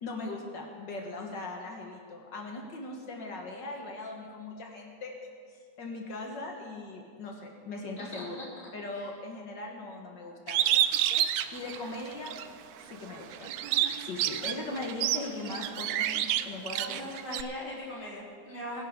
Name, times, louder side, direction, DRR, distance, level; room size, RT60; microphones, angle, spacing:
voice 1, 0.0-5.1 5.5-8.4 8.7-10.6 11.5-12.3 12.8-13.5 14.0-17.1, left 2 dB, 70° left, 1 dB, 2.1 m, -39 dB
voice 2, 8.0-8.4 8.9-9.1 16.9-18.8, left 1 dB, 40° left, -7 dB, 4.0 m, -40 dB
Bird, 10.5-12.5 12.9-17.4, right 11 dB, 70° right, 0.9 m, -29 dB
22.5 x 11.0 x 3.7 m, 2.1 s
omnidirectional pair, 2.0 m